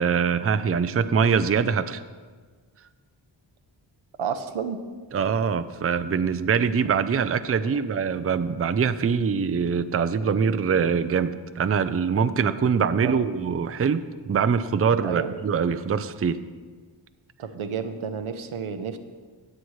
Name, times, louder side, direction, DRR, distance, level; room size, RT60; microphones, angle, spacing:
voice 1, 0.0-2.0 5.1-16.4, right 6 dB, 30° right, 11 dB, 0.5 m, -23 dB
voice 2, 4.2-4.8 12.9-13.2 15.0-15.3 17.4-19.0, right 6 dB, 90° right, 8 dB, 0.9 m, -31 dB
19.0 x 7.6 x 3.2 m, 1.5 s
wide cardioid pair, 70°, 48 cm